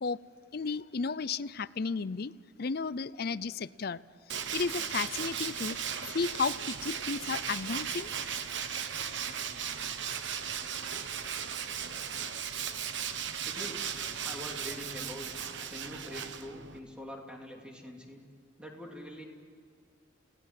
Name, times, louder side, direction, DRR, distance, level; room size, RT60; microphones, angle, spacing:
voice 1, 0.5-2.3 2.6-4.0 4.3-5.8 6.0-8.1, left 5 dB, 50° left, 18 dB, 0.5 m, -33 dB
Tools, 4.3-16.8, right 7 dB, 65° right, 1.2 m, -36 dB
voice 2, 13.4-15.3 15.7-18.2 18.6-19.2, equal, 5° right, 1 dB, 2.9 m, -44 dB
30.0 x 18.5 x 7.6 m, 2.2 s
head